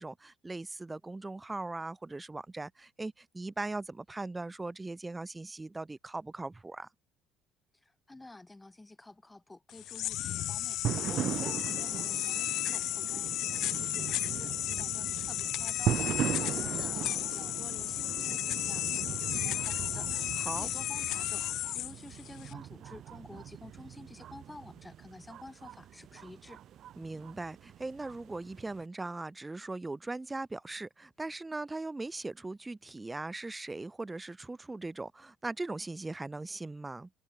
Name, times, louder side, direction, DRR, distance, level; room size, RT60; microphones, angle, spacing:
voice 1, 0.0-6.9 11.1-11.5 20.3-20.7 27.0-37.1, right 2 dB, 15° right, 1.1 m, -39 dB
voice 2, 7.8-26.6, left 2 dB, 15° left, 4.2 m, -51 dB
sound 1, 9.7-22.5, left 14 dB, 65° left, 0.9 m, -34 dB
sound 2, 10.8-28.8, right 11 dB, 55° right, 4.4 m, -39 dB
supercardioid pair, 85°, 0 cm